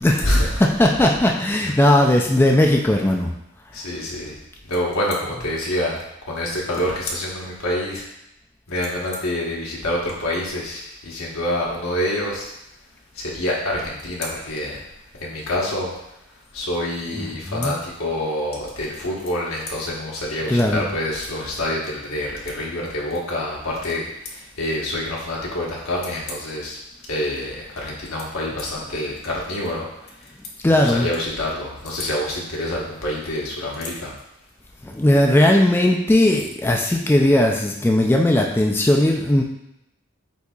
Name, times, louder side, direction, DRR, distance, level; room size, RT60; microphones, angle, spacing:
voice 1, 0.0-3.3 17.1-17.8 20.5-20.9 30.6-31.1 34.8-39.4, left 1 dB, 10° left, 1 dB, 0.3 m, -18 dB
voice 2, 3.7-4.3 4.6-6.0 6.3-8.0 8.7-12.5 13.2-14.8 15.2-15.9 16.5-24.0 24.6-26.8 27.1-29.9 30.7-34.1, left 1 dB, 85° left, -4 dB, 1.3 m, -26 dB
8.1 x 2.7 x 2.4 m, 0.84 s
head